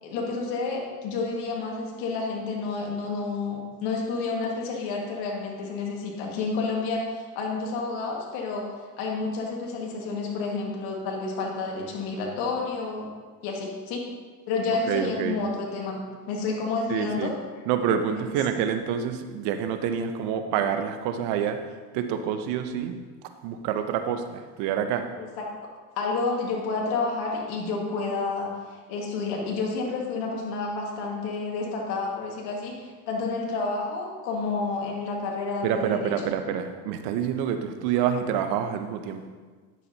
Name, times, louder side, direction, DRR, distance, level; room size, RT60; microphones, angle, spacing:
voice 1, 0.0-8.7 9.0-13.1 13.4-14.1 14.5-17.3 18.1-18.2 25.2-25.3 26.0-36.1, left 4 dB, 75° left, -1 dB, 1.9 m, -30 dB
voice 2, 14.9-15.4 16.9-17.3 17.7-21.6 21.9-23.0 23.4-25.1 35.6-39.2, right 8 dB, 75° right, 8 dB, 0.8 m, -27 dB
10.0 x 7.3 x 2.8 m, 1.4 s
supercardioid pair, 85°, 41 cm